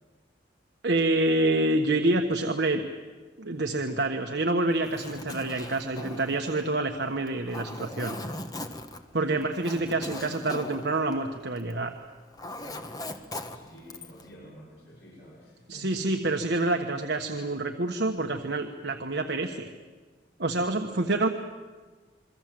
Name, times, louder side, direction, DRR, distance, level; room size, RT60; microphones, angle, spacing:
voice 1, 0.8-2.8 3.4-8.2 9.1-11.9 15.7-19.7 20.4-21.3, right 2 dB, 65° right, 4 dB, 1.3 m, -27 dB
Zipper (clothing), 4.7-11.8 12.1-14.3, left 1 dB, 20° left, 1.4 m, -40 dB
voice 2, 12.6-16.0 20.5-20.6, equal, 85° left, -5 dB, 5.9 m, -50 dB
27.5 x 23.0 x 7.7 m, 1.4 s
head